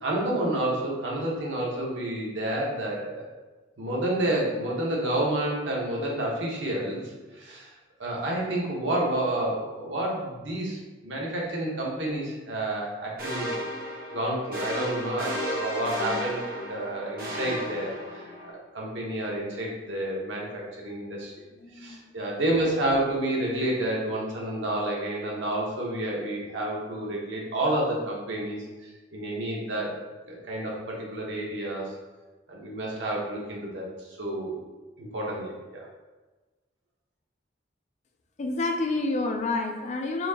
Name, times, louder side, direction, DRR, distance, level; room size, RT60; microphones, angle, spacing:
voice 1, 0.0-3.3 3.8-13.5 14.1-21.3 21.7-29.9 30.3-31.9 32.5-34.6 35.0-35.8, right 1 dB, 85° right, -3 dB, 1.0 m, -30 dB
sound 1, 13.2-18.5, equal, 55° right, 1.1 m, -33 dB
voice 2, 21.6-22.1 38.4-40.3, left 2 dB, 40° left, 4 dB, 0.4 m, -29 dB
4.3 x 2.7 x 2.8 m, 1.2 s
head